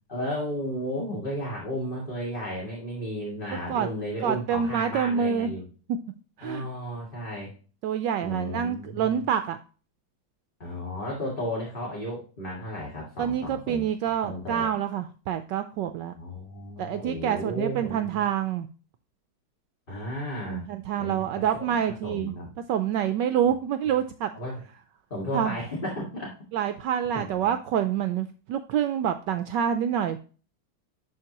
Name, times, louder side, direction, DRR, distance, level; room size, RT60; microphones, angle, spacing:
voice 1, 0.1-5.6 6.4-7.5 8.2-9.2 10.6-14.7 16.2-18.1 19.9-20.7 21.0-21.7 22.0-22.5 24.3-24.6 25.1-26.3 27.1-27.6, equal, 25° left, -3 dB, 2.1 m, -34 dB
voice 2, 3.5-3.9 4.2-5.5 6.4-6.7 7.8-9.6 13.2-16.1 16.8-18.7 20.5-22.3 22.7-24.3 25.3-25.5 26.5-30.2, right 9 dB, 75° right, 9 dB, 1.1 m, -27 dB
11.0 x 4.3 x 2.9 m, 0.37 s
omnidirectional pair, 2.1 m